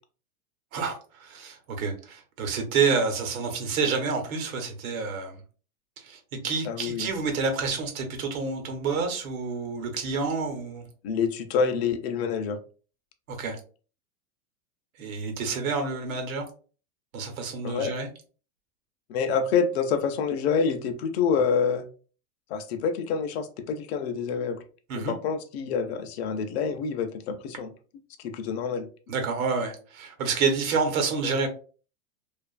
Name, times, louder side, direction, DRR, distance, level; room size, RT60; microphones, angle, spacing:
voice 1, 0.7-5.4 6.0-10.9 13.3-13.6 15.0-16.5 17.1-18.1 24.9-25.1 29.1-31.5, right 5 dB, 80° right, 5 dB, 1.0 m, -28 dB
voice 2, 6.7-7.1 11.0-12.6 17.6-17.9 19.1-21.8 22.5-24.6 25.0-27.7 28.2-28.9, left 6 dB, 50° left, 7 dB, 0.5 m, -27 dB
2.6 x 2.4 x 2.3 m, 0.38 s
supercardioid pair, 160°, 41 cm